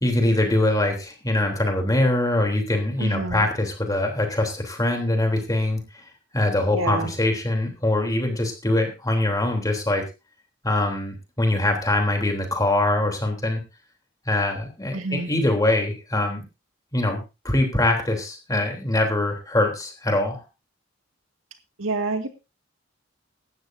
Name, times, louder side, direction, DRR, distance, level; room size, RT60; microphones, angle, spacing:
voice 1, 0.0-6.0 6.3-10.0 10.6-13.6 14.3-16.4 16.9-17.2 17.4-20.4, left 1 dB, 20° left, 3 dB, 3.3 m, -23 dB
voice 2, 3.0-3.5 6.7-7.1 14.9-15.3 21.8-22.3, right 3 dB, 90° right, 6 dB, 2.1 m, -27 dB
17.5 x 12.5 x 2.7 m, 0.28 s
head